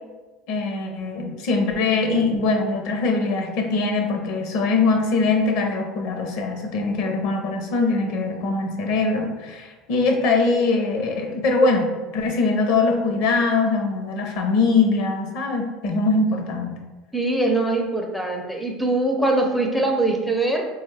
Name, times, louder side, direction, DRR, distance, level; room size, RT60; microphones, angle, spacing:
voice 1, 0.5-16.8, left 3 dB, 70° left, 3 dB, 0.6 m, -22 dB
voice 2, 17.1-20.7, right 2 dB, ahead, 1 dB, 0.5 m, -22 dB
3.7 x 2.3 x 3.2 m, 1.2 s
supercardioid pair, 110°, 0 cm